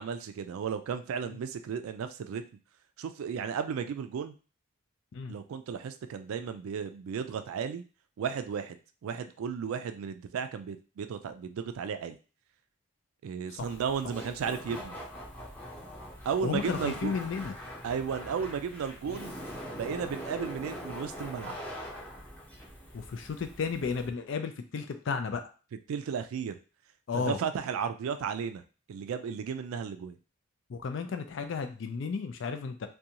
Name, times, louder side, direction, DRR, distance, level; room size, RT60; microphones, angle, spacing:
voice 1, 0.0-2.4 3.0-4.3 5.3-7.8 8.2-12.2 13.2-15.0 16.3-17.2 17.8-19.4 19.7-21.6 25.9-26.6 27.1-28.6 28.9-30.2, right 7 dB, 85° right, 9 dB, 0.3 m, -34 dB
Laughter, 13.6-24.1, equal, 10° left, 0.7 m, -43 dB
voice 2, 16.4-17.5 22.9-25.4 27.1-27.4 30.7-32.9, left 5 dB, 60° left, 7 dB, 0.4 m, -33 dB
2.5 x 2.2 x 2.8 m, 0.35 s
head